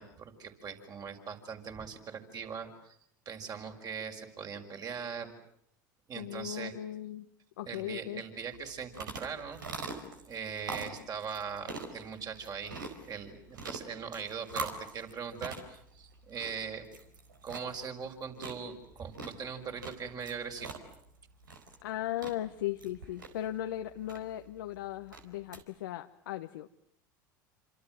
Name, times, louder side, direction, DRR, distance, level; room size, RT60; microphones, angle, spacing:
voice 1, 0.0-3.0 3.3-5.3 6.1-6.7 7.7-9.6 10.3-16.9 17.4-20.8, right 6 dB, 40° right, 4 dB, 6.0 m, -41 dB
voice 2, 6.2-7.3 7.6-8.2 10.9-11.0 21.8-26.7, left 12 dB, 80° left, 7 dB, 1.1 m, -37 dB
sound 1, 8.5-25.6, right 3 dB, 90° right, 4.4 m, -44 dB
28.5 x 27.0 x 7.8 m, 0.71 s
hypercardioid pair, 80°, 10 cm